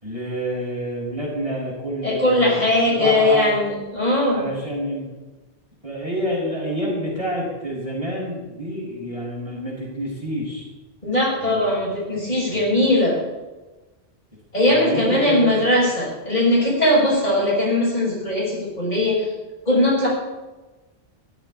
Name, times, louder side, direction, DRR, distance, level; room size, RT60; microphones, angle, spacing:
voice 1, 0.0-2.7 3.0-3.5 4.3-5.1 5.8-10.7 11.4-11.7 12.1-12.7 14.6-15.5, equal, 30° right, -5 dB, 5.9 m, -28 dB
voice 2, 2.0-4.4 11.0-13.2 14.5-19.3 19.6-20.1, left 1 dB, 40° left, -5 dB, 6.7 m, -19 dB
14.5 x 8.4 x 10.0 m, 1.2 s
omnidirectional pair, 1.1 m